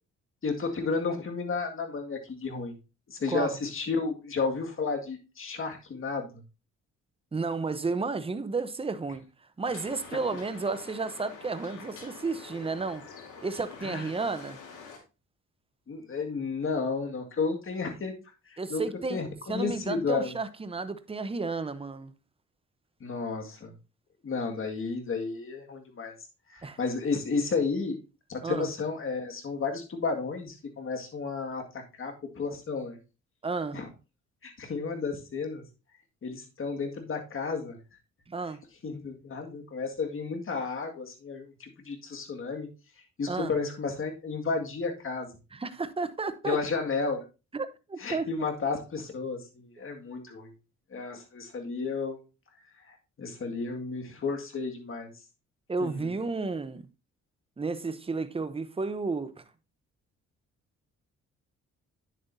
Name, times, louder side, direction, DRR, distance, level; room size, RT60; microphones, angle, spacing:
voice 1, 0.4-2.8 3.1-6.4 13.8-14.1 15.9-18.1 18.5-20.3 23.0-23.7 24.2-26.1 26.5-28.0 28.3-33.0 33.7-33.9 34.4-35.6 36.2-37.8 38.8-42.7 43.2-45.3 46.4-47.2 48.0-50.5 50.9-52.2 52.9-55.1 55.8-56.0, left 4 dB, 45° left, 2.0 m, -32 dB
voice 2, 7.3-9.2 9.6-13.0 13.4-14.6 18.6-19.2 19.5-22.1 26.6-26.8 28.4-28.7 33.4-33.8 38.3-38.6 43.3-43.5 45.5-46.6 47.5-48.5 55.7-56.9 57.6-59.4, right 4 dB, 20° right, 0.7 m, -32 dB
sound 1, 9.6-15.0, left 5 dB, 80° left, 3.0 m, -46 dB
9.6 x 7.6 x 2.7 m
cardioid pair, 90°, 30 cm